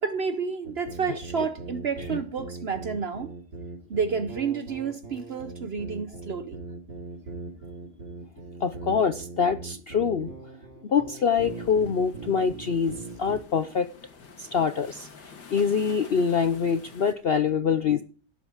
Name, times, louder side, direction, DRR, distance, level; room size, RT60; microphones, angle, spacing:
voice 1, 0.0-3.3 3.9-6.6, right 6 dB, 55° right, 0.8 m, -30 dB
sound 1, 0.6-13.4, right 3 dB, 90° right, 4.9 m, -40 dB
voice 2, 8.6-10.3 10.8-13.9 14.4-18.0, left 6 dB, 60° left, 0.6 m, -25 dB
sound 2, 11.4-17.1, left 5 dB, 90° left, 2.3 m, -49 dB
16.5 x 7.8 x 4.9 m
omnidirectional pair, 1.8 m